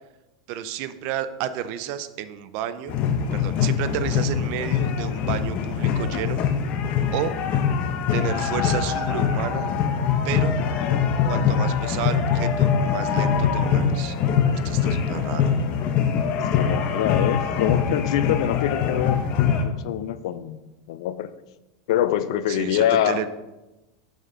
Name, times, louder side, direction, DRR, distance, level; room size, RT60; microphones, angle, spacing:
voice 1, 0.5-3.0 3.3-6.4 7.1-7.3 8.1-9.7 10.2-10.5 11.2-14.1 14.5-15.5 22.5-23.3, right 10 dB, 55° right, 13 dB, 0.5 m, -31 dB
sound 1, 2.9-19.6, left 7 dB, 45° left, 0.8 m, -23 dB
voice 2, 16.3-19.2 19.5-21.3 21.9-23.2, left 11 dB, 70° left, 14 dB, 0.4 m, -25 dB
6.2 x 5.2 x 3.8 m, 1.0 s
supercardioid pair, 120°, 3 cm